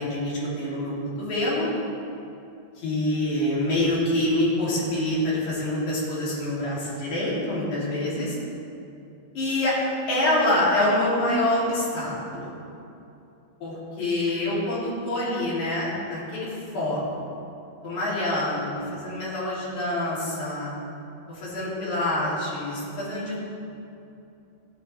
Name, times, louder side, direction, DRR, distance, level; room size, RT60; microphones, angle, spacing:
voice 1, 0.0-1.7 2.8-8.4 9.3-9.8 10.1-12.6 13.6-17.3 17.8-20.7 21.3-23.4, left 1 dB, 40° left, -8 dB, 4.2 m, -26 dB
16.5 x 10.0 x 3.6 m, 2.8 s
omnidirectional pair, 5.9 m